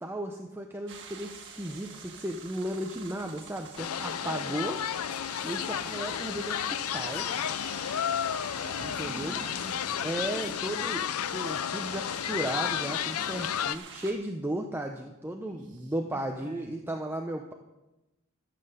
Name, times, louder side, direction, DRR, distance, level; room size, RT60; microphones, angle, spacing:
voice 1, 0.0-4.8 5.4-6.6 6.9-7.3 8.8-9.3 10.0-17.5, right 1 dB, 10° right, 3 dB, 0.7 m, -35 dB
sound 1, 0.9-14.1, right 6 dB, 55° right, 1.6 m, -48 dB
sound 2, 3.8-13.8, left 9 dB, 70° left, 0.5 m, -32 dB
voice 2, 4.2-4.7 8.0-8.1 8.4-10.5 11.5-11.9 12.6-13.4 15.3-17.0, right 2 dB, 35° right, 1 dB, 2.5 m, -48 dB
13.5 x 7.7 x 6.9 m, 1.0 s
head